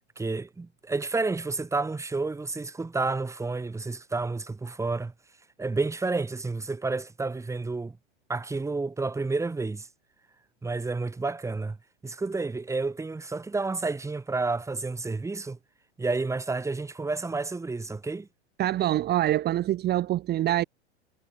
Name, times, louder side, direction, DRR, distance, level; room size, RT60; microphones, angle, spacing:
voice 1, 0.2-5.1 5.6-8.0 8.3-9.9 10.6-11.8 12.0-15.6 16.0-18.3, right 3 dB, 10° right, 3.3 m, -30 dB
voice 2, 18.6-20.6, right 13 dB, 30° right, 2.1 m, -25 dB
figure-of-eight pair, 95°, 35 cm